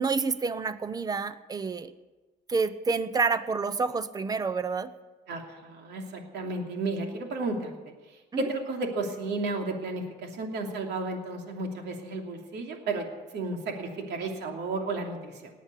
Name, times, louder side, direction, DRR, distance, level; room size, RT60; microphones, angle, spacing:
voice 1, 0.0-1.9 2.5-4.9 8.3-8.5, right 4 dB, 20° right, 14 dB, 0.7 m, -28 dB
voice 2, 5.3-7.7 8.4-13.1 13.3-15.5, right 3 dB, 70° right, 2 dB, 2.9 m, -33 dB
19.0 x 8.3 x 8.6 m, 1.2 s
cardioid pair, 145°, 18 cm